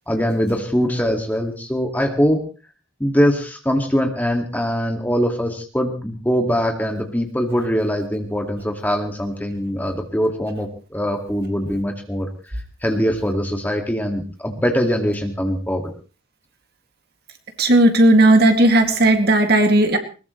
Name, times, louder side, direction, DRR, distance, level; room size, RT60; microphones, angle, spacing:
voice 1, 0.1-2.4 3.0-15.8, equal, 10° left, 4 dB, 2.1 m, -22 dB
voice 2, 17.6-20.0, right 1 dB, 50° right, 5 dB, 2.3 m, -14 dB
21.0 x 20.0 x 3.2 m, 0.35 s
head